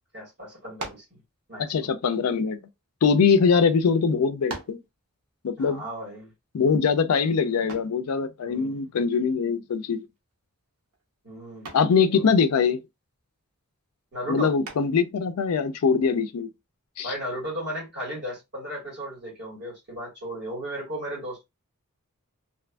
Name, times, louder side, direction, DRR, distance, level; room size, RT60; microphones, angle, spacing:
voice 1, 0.1-1.2 1.5-1.9 5.6-6.3 8.4-8.8 11.2-11.8 12.1-12.3 14.1-14.5 17.0-21.4, equal, 50° right, 1.6 m, -35 dB
sound 1, 0.8-1.2 2.1-3.3 3.9-4.0 4.5-4.9 7.7-8.0 9.9-10.3 10.7-11.0 11.6-12.0 14.6-15.1, right 2 dB, 90° right, 0.8 m, -40 dB
voice 2, 1.7-2.6 3.0-4.8 5.4-5.8 6.5-10.1 11.7-12.8 14.3-16.5 17.0-17.1, left 5 dB, 80° left, 0.4 m, -22 dB
2.6 x 2.5 x 2.2 m
head